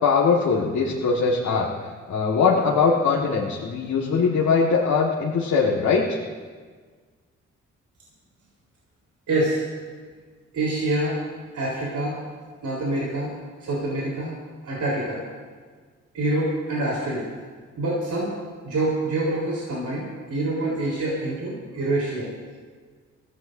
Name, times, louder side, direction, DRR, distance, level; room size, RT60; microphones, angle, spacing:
voice 1, 0.0-1.7 2.1-6.2, left 5 dB, 70° left, -3 dB, 1.7 m, -21 dB
voice 2, 9.3-9.6 10.5-11.2 11.5-12.2 12.6-13.3 13.6-14.3 14.6-15.2 16.1-17.3 17.8-18.4 18.6-22.3, right 2 dB, 70° right, -6 dB, 3.9 m, -26 dB
23.5 x 15.0 x 2.7 m, 1.5 s
supercardioid pair, 50°, 31 cm